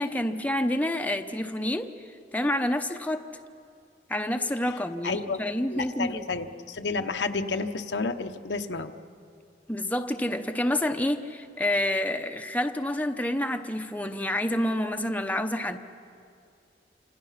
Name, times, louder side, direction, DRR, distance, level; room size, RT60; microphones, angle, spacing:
voice 1, 0.0-1.9 2.3-3.3 4.1-6.2 9.7-15.8, left 1 dB, 10° left, 5 dB, 0.8 m, -28 dB
voice 2, 5.0-5.4 5.7-8.9, left 4 dB, 85° left, 6 dB, 1.0 m, -30 dB
28.0 x 26.5 x 5.8 m, 2.4 s
head